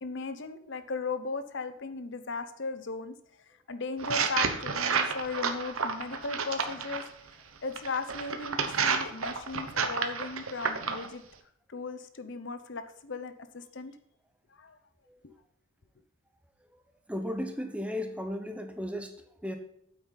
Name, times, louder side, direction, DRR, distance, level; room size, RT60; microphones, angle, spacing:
voice 1, 0.0-3.2 3.5-7.1 7.6-11.2 11.7-14.0 14.5-14.8 15.2-15.3, left 4 dB, 55° left, 10 dB, 0.8 m, -37 dB
sound 1, 4.0-7.1 7.8-11.1, right 5 dB, 70° right, 1.1 m, -30 dB
voice 2, 17.1-19.6, left 1 dB, 5° right, 6 dB, 0.9 m, -35 dB
9.3 x 8.0 x 4.1 m, 0.75 s
head